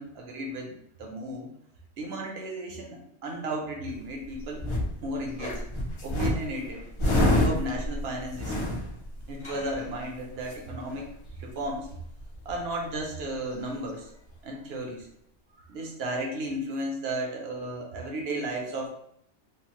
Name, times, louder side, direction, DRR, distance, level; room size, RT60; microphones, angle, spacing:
voice 1, 0.0-1.5 2.0-4.7 5.0-5.6 6.0-6.9 7.3-8.8 9.3-11.1 11.4-11.9 12.4-14.1 14.4-15.1 15.6-18.9, right 1 dB, 65° right, 1 dB, 0.9 m, -34 dB
sound 1, 4.0-5.0 5.4-10.0 10.4-10.5 10.8-11.3 11.6-11.7 11.8-12.7 13.5-13.6, left 1 dB, 35° left, 0.5 m, -28 dB
3.1 x 2.1 x 2.8 m, 0.72 s
omnidirectional pair, 1.2 m